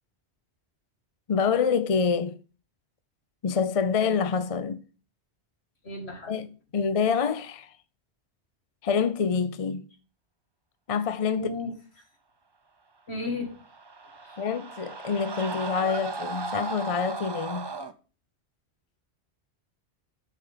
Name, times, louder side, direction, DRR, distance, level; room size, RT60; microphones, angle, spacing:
voice 1, 1.3-2.4 3.4-4.8 6.3-7.8 8.8-9.8 10.9-11.5 14.4-17.7, left 6 dB, 40° left, 0.5 m, -26 dB
voice 2, 5.8-6.3 11.3-11.7 13.1-13.5 14.2-14.3, left 2 dB, 70° left, 2.4 m, -33 dB
sound 1, 13.5-17.9, right 3 dB, 30° right, 0.6 m, -36 dB
6.9 x 5.1 x 5.7 m
omnidirectional pair, 1.1 m